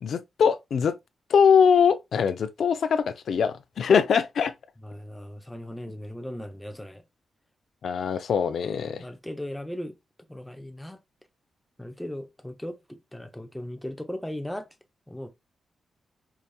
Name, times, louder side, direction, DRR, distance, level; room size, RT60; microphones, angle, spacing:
voice 1, 0.0-0.9 1.3-4.5 7.8-9.0, left 6 dB, 65° left, 0.5 m, -22 dB
voice 2, 4.8-7.0 8.8-10.0 10.3-11.0 11.8-14.7 15.1-15.3, left 1 dB, 5° left, 0.6 m, -37 dB
4.7 x 2.8 x 2.3 m
wide cardioid pair, 155°, 0 cm